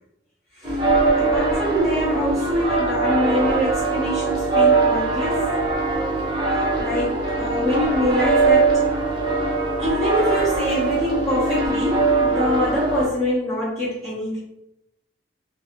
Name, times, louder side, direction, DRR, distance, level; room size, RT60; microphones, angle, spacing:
sound 1, 0.6-13.1, right 3 dB, 25° right, 0.6 m, -21 dB
voice 1, 1.2-5.5 6.8-8.8 9.8-14.4, equal, 15° left, -12 dB, 1.0 m, -24 dB
3.0 x 2.4 x 2.9 m, 0.84 s
head